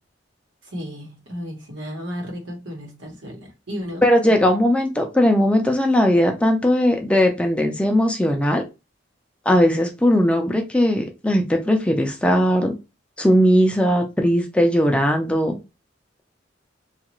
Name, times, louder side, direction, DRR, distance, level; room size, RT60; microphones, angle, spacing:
voice 1, 0.6-4.3, equal, 85° right, 1.1 m, -34 dB
voice 2, 4.0-8.6 9.5-12.7 13.2-15.5, equal, 5° left, 0.4 m, -18 dB
2.9 x 2.4 x 2.9 m
head